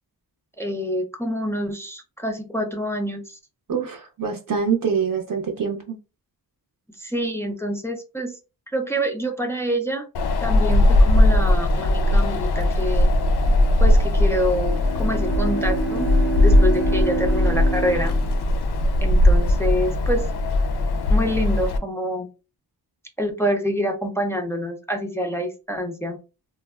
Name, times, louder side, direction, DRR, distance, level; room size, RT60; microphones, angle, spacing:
voice 1, 0.6-3.4 7.0-8.4 8.7-10.1 10.4-13.1 13.8-16.1 16.4-18.1 19.0-20.3 21.1-22.3 23.2-26.2, equal, 5° left, 0.4 m, -26 dB
voice 2, 3.7-6.0, right 6 dB, 55° right, 0.6 m, -25 dB
Wind, 10.1-21.8, left 1 dB, 70° left, 0.5 m, -19 dB
Bowed string instrument, 14.7-19.0, right 3 dB, 85° right, 1.0 m, -28 dB
3.4 x 2.1 x 2.3 m
wide cardioid pair, 155°, 41 cm